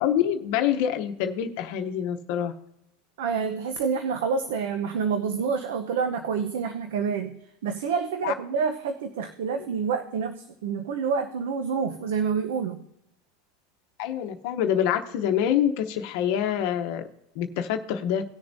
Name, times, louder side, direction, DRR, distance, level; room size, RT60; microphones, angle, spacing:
voice 1, 0.0-2.5 8.2-8.3 14.0-17.0 17.4-18.2, left 9 dB, 60° left, 6 dB, 0.8 m, -26 dB
voice 2, 3.2-12.8, right 6 dB, 80° right, 7 dB, 0.7 m, -28 dB
18.0 x 6.9 x 2.7 m, 0.85 s
supercardioid pair, 140°, 0 cm